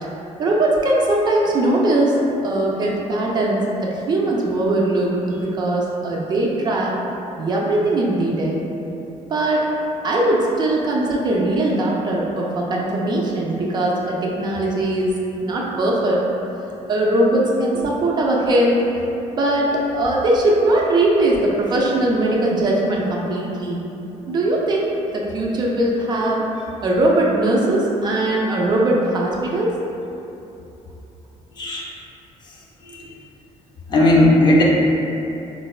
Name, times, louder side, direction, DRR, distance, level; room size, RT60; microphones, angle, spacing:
voice 1, 0.4-6.9 7.4-8.6 9.3-9.7 10.0-15.1 15.4-16.2 16.9-18.8 19.3-23.8 24.3-26.4 26.8-29.8, right 1 dB, 35° right, -3 dB, 0.3 m, -20 dB
voice 2, 33.9-34.6, left 1 dB, 35° left, -4 dB, 0.4 m, -15 dB
4.4 x 2.1 x 2.3 m, 2.9 s
cardioid pair, 165°, 13 cm